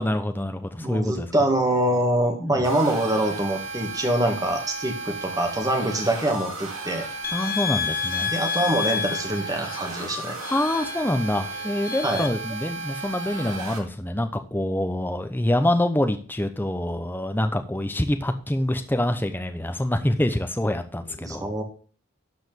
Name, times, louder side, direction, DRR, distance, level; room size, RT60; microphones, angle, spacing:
voice 1, 0.0-1.3 2.4-2.7 7.3-8.3 10.5-21.5, left 1 dB, 10° left, 7 dB, 0.9 m, -26 dB
voice 2, 0.8-7.1 8.2-10.4 12.0-12.2 21.2-21.6, right 1 dB, 15° right, 2 dB, 2.2 m, -24 dB
sound 1, 2.6-13.8, right 3 dB, 65° right, 2.7 m, -34 dB
sound 2, 7.2-12.3, left 8 dB, 40° left, 1.0 m, -31 dB
12.5 x 5.1 x 5.2 m, 0.40 s
head